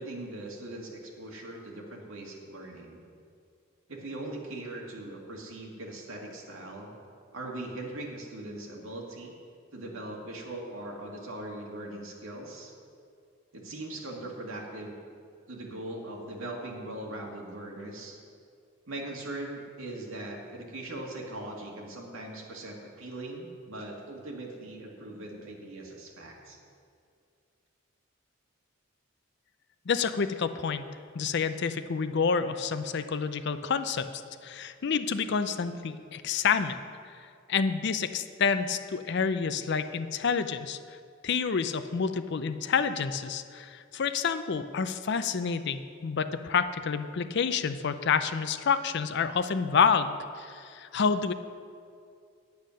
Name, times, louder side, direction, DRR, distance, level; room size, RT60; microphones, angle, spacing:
voice 1, 0.0-3.0 3.9-6.9 7.3-9.3 9.7-12.7 13.5-15.0 15.5-18.2 18.9-26.6, right 1 dB, 75° right, -1 dB, 2.0 m, -40 dB
voice 2, 29.9-30.9 31.1-36.8 37.0-40.8 41.2-51.3, left 6 dB, 55° left, 11 dB, 0.5 m, -28 dB
9.5 x 8.4 x 6.4 m, 2.3 s
head